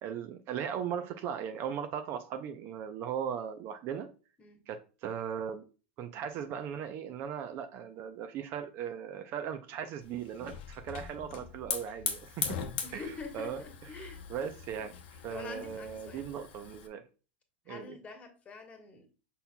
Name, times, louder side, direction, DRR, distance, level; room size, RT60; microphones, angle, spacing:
voice 1, 0.0-4.1 4.7-5.7 6.0-12.6 12.9-13.0 13.3-13.6 14.0-14.9 15.2-17.0 17.7-18.0, right 8 dB, 45° right, 8 dB, 0.6 m, -38 dB
Hiss / Fire, 10.0-16.9, left 7 dB, 75° left, 0.8 m, -40 dB
voice 2, 12.8-14.2 15.3-16.3 17.7-19.1, left 4 dB, 25° left, 4 dB, 1.2 m, -45 dB
5.6 x 4.2 x 2.2 m, 0.34 s
hypercardioid pair, 115°, 6 cm